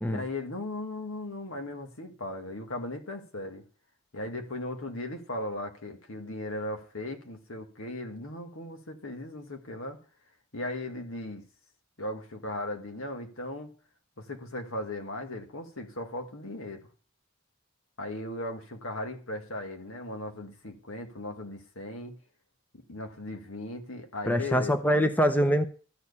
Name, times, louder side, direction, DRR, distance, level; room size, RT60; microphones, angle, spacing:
voice 1, 0.0-3.6 4.1-10.0 10.5-11.4 12.0-13.7 14.2-16.8 18.0-22.1 22.9-24.8, left 1 dB, 75° left, 2.0 m, -37 dB
voice 2, 24.3-25.7, equal, 10° left, 0.6 m, -24 dB
13.5 x 4.7 x 8.3 m
head